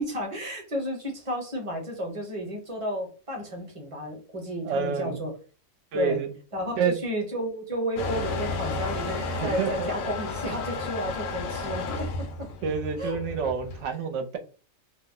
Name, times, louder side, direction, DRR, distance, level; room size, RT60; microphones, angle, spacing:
voice 1, 0.0-5.4 5.9-6.2 6.5-12.5 13.0-13.2, equal, 30° right, 0.8 m, -32 dB
voice 2, 4.6-5.2 5.9-6.3 6.8-7.0 9.3-9.9 12.6-14.4, right 6 dB, 70° right, 0.9 m, -28 dB
Motor vehicle (road) / Engine starting / Accelerating revving vroom, 8.0-13.8, left 3 dB, 80° left, 1.0 m, -32 dB
2.5 x 2.0 x 3.6 m
omnidirectional pair, 1.4 m